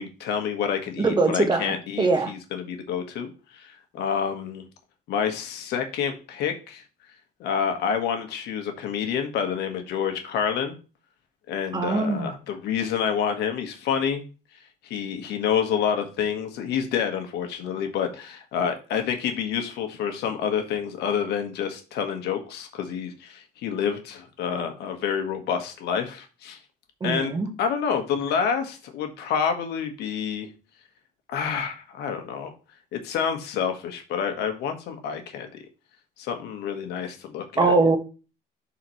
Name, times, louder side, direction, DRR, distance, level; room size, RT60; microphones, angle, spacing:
voice 1, 0.0-4.7 5.1-6.8 7.4-10.8 11.5-14.2 14.9-26.6 27.0-27.3 27.6-30.5 31.3-32.5 32.9-35.5 36.2-37.7, left 7 dB, 80° left, 5 dB, 1.5 m, -28 dB
voice 2, 1.0-2.3 11.7-12.3 27.0-27.5 37.6-38.0, right 3 dB, 25° right, 6 dB, 1.3 m, -22 dB
11.5 x 4.2 x 3.1 m, 0.34 s
cardioid pair, 110°, 17 cm